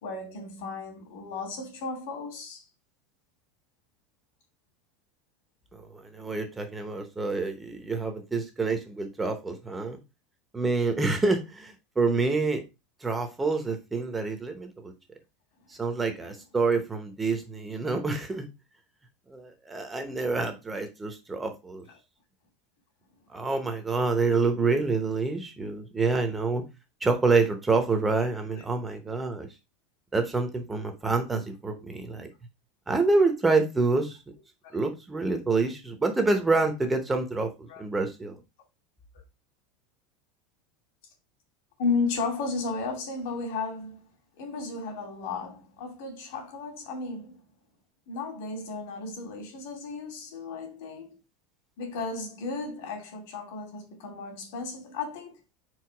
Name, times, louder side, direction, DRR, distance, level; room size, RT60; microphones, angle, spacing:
voice 1, 0.0-2.6 21.9-22.0 28.5-28.7 37.7-37.8 41.8-44.1 44.4-47.4 48.1-51.2 51.8-55.4, left 4 dB, 60° left, 2.4 m, -34 dB
voice 2, 5.7-10.0 10.5-12.6 13.0-14.9 15.7-18.5 19.3-21.8 23.3-26.6 27.0-29.5 30.1-32.3 32.9-34.2 34.7-37.5 37.8-38.4, right 3 dB, 10° right, 0.8 m, -27 dB
4.8 x 4.5 x 4.5 m
supercardioid pair, 170°, 0 cm